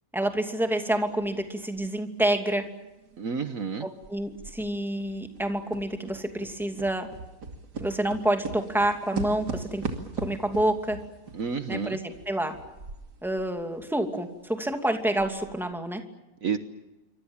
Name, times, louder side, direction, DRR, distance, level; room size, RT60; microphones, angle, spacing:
voice 1, 0.1-2.6 3.8-7.1 7.8-9.8 10.2-11.0 11.7-12.5 13.2-16.0, right 1 dB, ahead, 5 dB, 2.6 m, -28 dB
sound 1, 1.2-1.3 1.8-3.7 4.0-13.5 13.8-13.9 14.4-14.5 15.0-15.5, right 4 dB, 85° right, 3.1 m, -39 dB
voice 2, 3.2-3.9 11.3-12.0 16.4-16.6, right 6 dB, 55° right, 9 dB, 1.6 m, -30 dB
27.5 x 25.0 x 7.2 m, 1.0 s
omnidirectional pair, 1.7 m